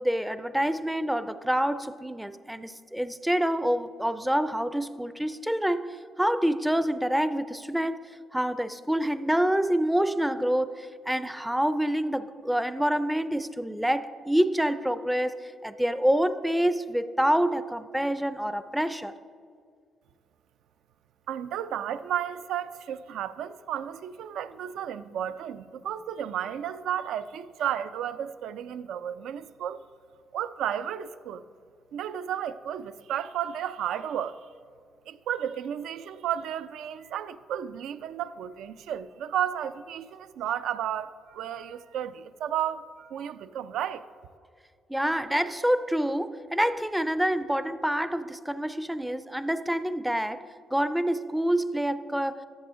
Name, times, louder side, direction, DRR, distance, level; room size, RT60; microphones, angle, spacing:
voice 1, 0.0-19.1 44.9-50.4 50.7-52.4, equal, 5° right, 0.4 m, -27 dB
voice 2, 21.3-29.8 30.3-31.4 31.9-34.4 35.1-44.1, right 10 dB, 80° right, 0.3 m, -33 dB
11.5 x 7.0 x 3.7 m
cardioid pair, 90°, 0 cm